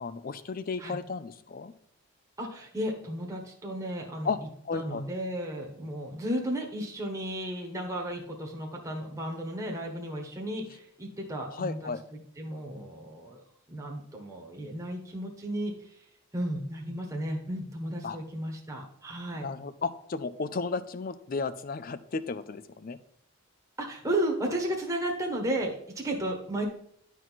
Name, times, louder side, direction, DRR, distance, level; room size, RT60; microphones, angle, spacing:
voice 1, 0.0-1.7 4.2-4.4 4.6-5.0 11.5-12.0 18.0-18.2 19.4-23.0, left 4 dB, 40° left, 14 dB, 0.4 m, -34 dB
voice 2, 2.4-4.3 4.7-11.9 12.4-13.4 13.7-16.0 16.3-19.5 23.8-26.6, right 1 dB, 15° right, 0 dB, 1.2 m, -34 dB
10.5 x 4.6 x 4.1 m, 0.68 s
head